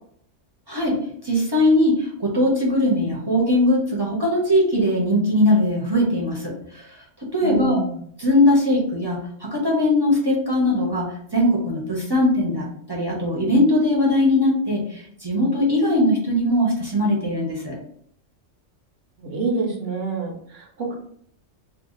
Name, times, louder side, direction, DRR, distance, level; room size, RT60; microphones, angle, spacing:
voice 1, 0.7-6.9 7.2-7.8 8.2-17.8, left 1 dB, 25° right, -4 dB, 0.7 m, -20 dB
voice 2, 7.4-8.0 19.2-20.9, right 3 dB, 60° right, 0 dB, 0.9 m, -27 dB
2.6 x 2.3 x 3.7 m, 0.62 s
omnidirectional pair, 1.3 m